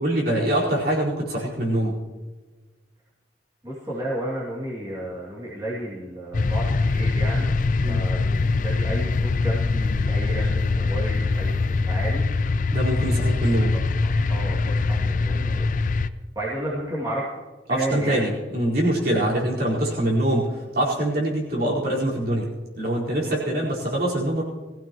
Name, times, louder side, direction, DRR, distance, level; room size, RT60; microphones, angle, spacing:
voice 1, 0.0-1.9 7.8-8.0 12.7-13.7 17.7-22.5 22.8-24.4, right 1 dB, 55° right, -5 dB, 4.6 m, -24 dB
voice 2, 3.6-11.6 11.8-12.3 13.7-16.0 16.3-17.3 17.7-18.2 23.3-23.4, right 1 dB, 20° right, -6 dB, 2.6 m, -32 dB
sound 1, 6.3-16.1, left 3 dB, 45° left, 0.4 m, -23 dB
21.5 x 15.5 x 3.1 m, 1.3 s
head